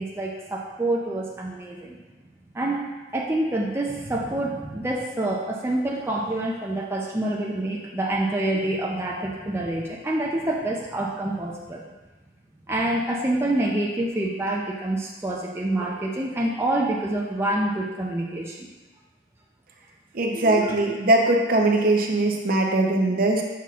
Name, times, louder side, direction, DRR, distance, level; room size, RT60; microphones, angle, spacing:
voice 1, 0.0-2.0 2.5-2.8 3.1-11.8 12.7-18.7 20.3-20.8, right 1 dB, 15° right, -3 dB, 0.5 m, -27 dB
voice 2, 20.1-23.4, right 2 dB, 50° right, 1 dB, 0.7 m, -21 dB
7.0 x 5.9 x 2.4 m, 1.2 s
head